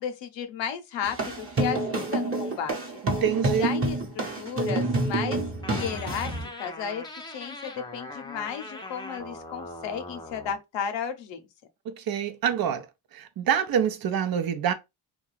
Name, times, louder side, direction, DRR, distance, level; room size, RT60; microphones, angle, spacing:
voice 1, 0.0-2.8 3.6-6.3 6.6-7.0 7.3-11.5, left 8 dB, 85° left, 0.7 m, -33 dB
sound 1, 1.0-6.4, right 2 dB, 30° right, 0.9 m, -28 dB
voice 2, 3.0-3.7 11.9-12.9 13.1-14.7, right 8 dB, 55° right, 0.5 m, -26 dB
sound 2, 5.6-10.6, left 2 dB, 10° left, 0.5 m, -41 dB
2.3 x 2.3 x 3.0 m
cardioid pair, 100°, 43 cm